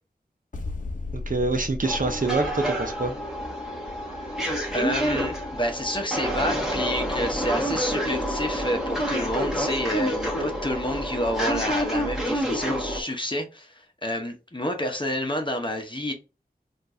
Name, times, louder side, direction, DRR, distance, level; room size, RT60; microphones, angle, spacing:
sound 1, 0.5-3.3, left 2 dB, 50° left, 0.7 m, -35 dB
voice 1, 1.1-3.1, right 2 dB, 55° right, 0.9 m, -26 dB
sound 2, 1.8-13.0, equal, 5° right, 1.5 m, -28 dB
voice 2, 4.7-13.7 14.0-16.1, equal, 30° left, 0.9 m, -29 dB
4.4 x 2.6 x 2.6 m
wide cardioid pair, 60°, 17 cm